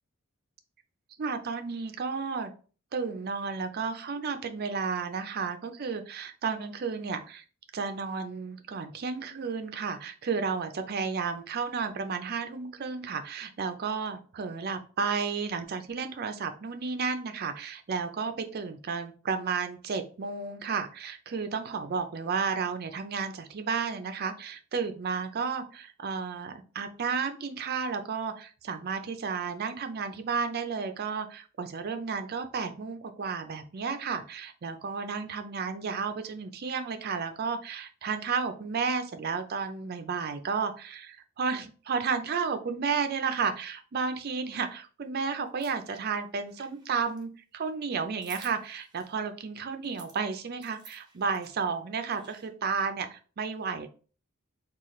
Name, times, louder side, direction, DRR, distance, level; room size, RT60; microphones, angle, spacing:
voice 1, 1.2-2.5 2.9-7.4 7.7-53.9, right 5 dB, 50° right, 8 dB, 0.5 m, -32 dB
sound 1, 45.5-46.0 46.4-47.2 48.2-49.1 49.8-50.2 50.6-51.5 52.1-52.5, right 4 dB, 20° right, 0.8 m, -52 dB
3.9 x 2.4 x 3.0 m, 0.38 s
head